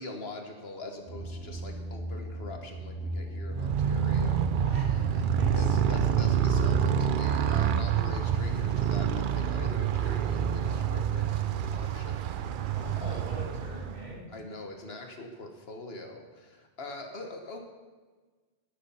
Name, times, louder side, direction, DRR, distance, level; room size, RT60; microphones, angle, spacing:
voice 1, 0.0-4.5 5.5-13.2 14.3-17.6, left 2 dB, 70° left, 3 dB, 1.5 m, -43 dB
sound 1, 1.1-8.7, equal, 25° left, 3.7 m, -36 dB
Motorcycle, 3.5-14.2, right 9 dB, 60° right, 0.6 m, -27 dB
voice 2, 4.6-5.9 12.7-14.3, equal, 40° right, -5 dB, 3.3 m, -43 dB
16.0 x 6.7 x 5.5 m, 1.4 s
omnidirectional pair, 1.1 m